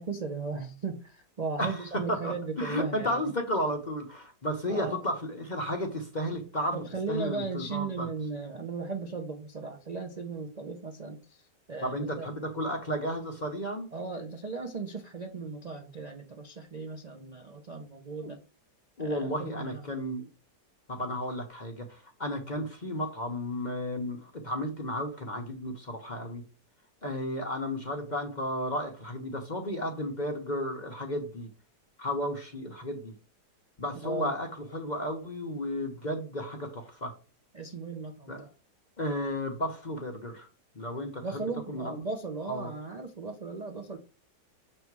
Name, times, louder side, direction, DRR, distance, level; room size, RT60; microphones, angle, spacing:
voice 1, 0.0-3.3 4.7-5.0 6.7-12.3 13.9-18.4 19.0-19.8 34.0-34.3 37.5-38.5 41.2-44.0, right 4 dB, 60° right, 3 dB, 0.4 m, -37 dB
voice 2, 1.6-6.8 7.1-8.1 11.8-13.9 18.2-18.3 19.0-20.3 20.9-26.4 27.0-31.5 32.0-33.1 33.8-37.1 38.3-38.5 39.0-40.5 40.7-41.4 41.7-42.0 42.5-42.7, equal, 35° left, 3 dB, 0.7 m, -33 dB
6.9 x 3.3 x 4.6 m, 0.35 s
omnidirectional pair, 1.9 m